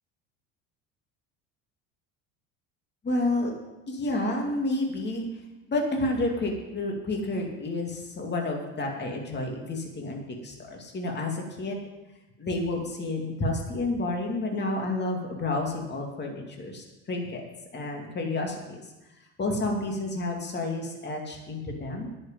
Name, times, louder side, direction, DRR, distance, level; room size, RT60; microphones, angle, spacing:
voice 1, 3.0-3.5 3.9-5.2 5.7-11.8 12.4-17.4 17.7-18.8 19.4-22.1, left 2 dB, 30° left, 1 dB, 2.5 m, -30 dB
10.5 x 6.7 x 9.1 m, 1.0 s
supercardioid pair, 90°, 37 cm